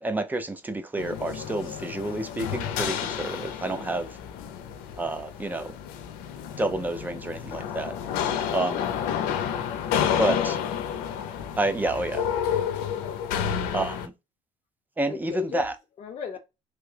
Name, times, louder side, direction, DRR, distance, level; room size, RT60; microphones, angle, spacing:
voice 1, 0.0-4.2 5.0-5.8 6.6-7.9 8.5-8.9 10.2-10.5 11.6-12.2 13.7-14.1 15.0-15.7, right 2 dB, 10° right, 0.6 m, -29 dB
sound 1, 1.0-14.1, left 8 dB, 90° left, 0.5 m, -30 dB
voice 2, 10.3-10.8 13.0-13.3 15.1-16.4, left 7 dB, 50° left, 0.6 m, -37 dB
3.1 x 2.2 x 3.3 m
cardioid pair, 110°, 14 cm